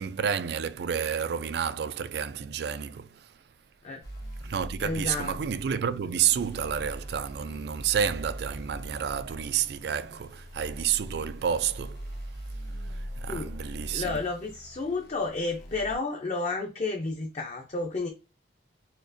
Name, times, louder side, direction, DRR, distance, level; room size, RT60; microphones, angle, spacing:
voice 1, 0.0-3.4 4.4-14.2, right 8 dB, 65° right, 0.3 m, -30 dB
sound 1, 4.0-15.9, equal, 60° left, 1.2 m, -41 dB
voice 2, 4.8-5.4 13.3-13.5 13.9-18.1, left 3 dB, 40° left, 0.5 m, -31 dB
4.3 x 2.4 x 2.6 m
head